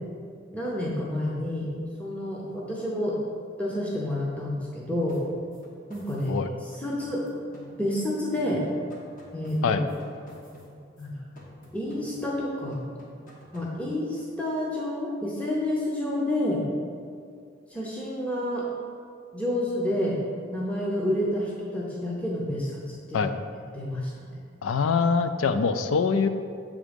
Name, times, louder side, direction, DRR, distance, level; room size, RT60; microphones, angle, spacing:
voice 1, 0.5-1.7 2.0-3.2 3.6-5.2 5.9-7.3 7.7-8.6 9.3-9.8 11.0-11.2 11.7-12.8 13.5-16.6 17.7-18.7 19.3-20.2 20.5-23.3 23.7-24.4, left 1 dB, 5° left, -5 dB, 0.8 m, -29 dB
sound 1, 5.1-8.1 8.4-11.1 11.4-12.4 12.7-13.8, equal, 45° left, 1.2 m, -50 dB
voice 2, 24.6-26.3, left 5 dB, 85° left, 9 dB, 0.4 m, -24 dB
7.2 x 3.7 x 5.1 m, 2.2 s
head